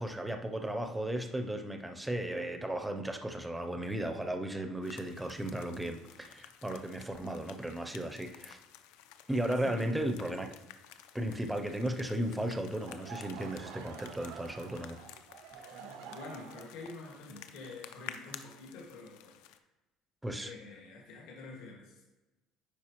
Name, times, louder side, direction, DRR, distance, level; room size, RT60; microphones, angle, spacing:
voice 1, 0.0-8.6 9.3-10.6 11.1-15.0 20.2-20.5, right 1 dB, 5° right, 5 dB, 0.4 m, -35 dB
sound 1, 4.8-19.6, left 11 dB, 85° left, 0.5 m, -53 dB
voice 2, 9.6-9.9 15.5-19.6 20.4-22.0, left 3 dB, 70° left, -2 dB, 1.7 m, -48 dB
Laughter / Crowd, 12.7-18.6, right 8 dB, 70° right, 0.4 m, -50 dB
9.4 x 4.5 x 2.9 m, 1.1 s
cardioid pair, 175°, 0 cm